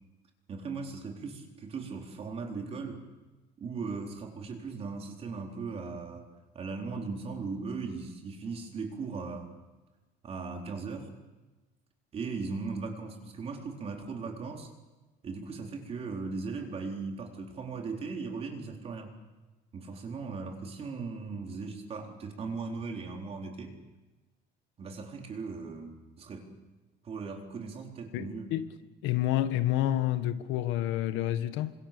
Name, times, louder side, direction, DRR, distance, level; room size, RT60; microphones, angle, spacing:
voice 1, 0.5-3.0 3.6-6.3 6.5-9.5 10.2-11.1 12.1-14.7 15.2-19.1 19.7-23.7 24.8-26.5 27.0-28.5, right 4 dB, 30° right, 4.1 m, -38 dB
voice 2, 28.1-28.7 29.0-31.7, left 13 dB, 80° left, 1.8 m, -29 dB
28.5 x 25.5 x 6.9 m
cardioid pair, 165°, 19 cm